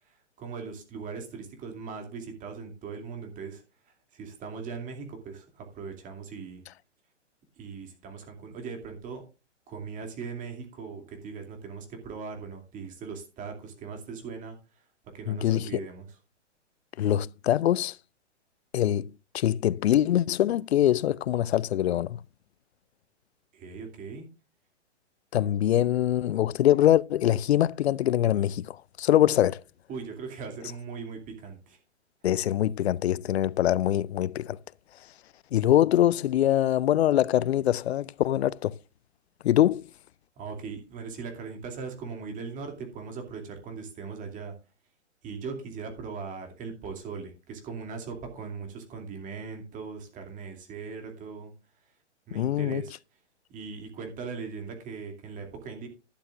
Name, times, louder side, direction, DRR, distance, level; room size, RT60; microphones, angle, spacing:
voice 1, 0.4-3.6 4.1-6.6 7.6-9.2 9.7-14.6 15.1-16.1 23.5-24.2 29.9-31.8 40.4-44.5 45.2-51.5 52.3-53.0 53.5-55.9, right 5 dB, 20° right, 2.6 m, -39 dB
voice 2, 15.3-15.8 17.0-18.0 18.7-22.2 25.3-29.6 32.2-34.6 35.5-38.7 39.4-39.8 52.3-52.8, left 12 dB, 60° left, 0.5 m, -24 dB
11.5 x 11.5 x 2.5 m
hypercardioid pair, 135°, 36 cm